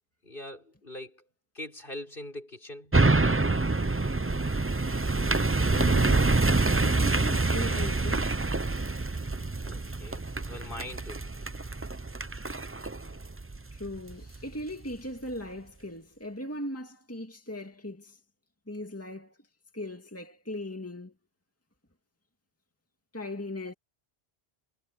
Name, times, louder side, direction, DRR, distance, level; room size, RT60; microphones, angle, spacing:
voice 1, 0.2-1.2 1.5-3.0 9.6-11.3, left 1 dB, 60° left, 6.4 m, -42 dB
sound 1, 2.9-14.4 14.8-14.9, right 3 dB, 15° right, 0.5 m, -26 dB
voice 2, 5.7-6.4 6.8-8.3 13.7-18.2 18.7-19.3 19.7-21.1 23.1-23.7, left 1 dB, 15° left, 2.2 m, -38 dB
omnidirectional pair, 1.0 m